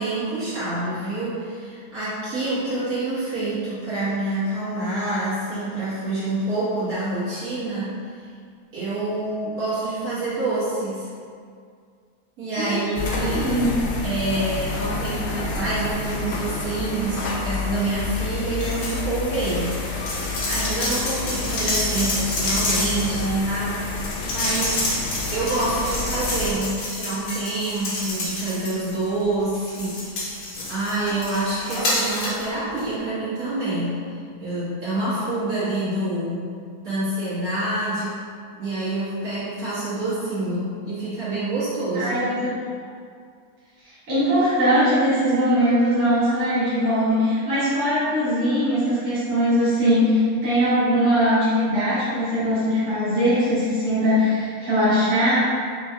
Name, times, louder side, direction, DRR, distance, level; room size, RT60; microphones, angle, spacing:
voice 1, 0.0-8.2 8.7-11.1 12.4-13.6 14.0-19.8 20.1-25.0 25.3-34.0 34.4-36.4 36.8-38.2 38.6-42.4, right 2 dB, 75° right, -13 dB, 2.2 m, -27 dB
voice 2, 12.6-13.7 41.9-42.5 44.1-55.4, equal, 50° right, -13 dB, 1.5 m, -21 dB
sound 1, 13.0-26.5, left 4 dB, 65° left, 0.6 m, -29 dB
sound 2, 18.6-19.0 19.3-29.1 29.5-32.5 32.8-32.9, left 2 dB, 90° left, 1.5 m, -28 dB
6.0 x 2.8 x 2.5 m, 2.2 s
omnidirectional pair, 1.6 m